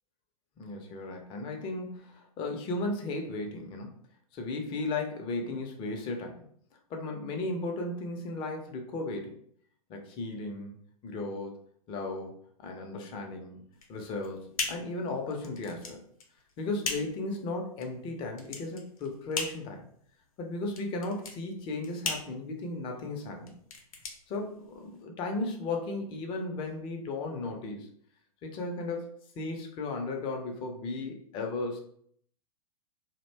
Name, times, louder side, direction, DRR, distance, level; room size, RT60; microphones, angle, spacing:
voice 1, 0.6-3.9 4.3-6.4 6.9-9.3 9.9-10.8 11.0-11.6 11.9-12.3 12.6-13.6 13.9-14.4 14.7-16.0 16.6-19.9 20.4-23.5 24.3-27.9 28.4-31.8, left 2 dB, 25° left, 3 dB, 0.5 m, -35 dB
sound 1, 13.7-25.0, left 4 dB, 65° left, 0.6 m, -39 dB
2.5 x 2.1 x 3.2 m, 0.62 s
figure-of-eight pair, 105°, 19 cm